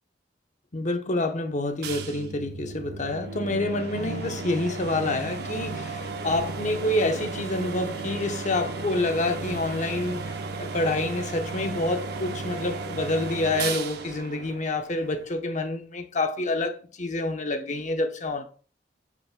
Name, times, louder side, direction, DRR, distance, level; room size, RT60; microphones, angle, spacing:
voice 1, 0.7-18.4, left 2 dB, 40° left, 0.8 m, -28 dB
sound 1, 1.8-15.3, right 3 dB, 60° right, 0.7 m, -34 dB
8.4 x 5.7 x 2.2 m
head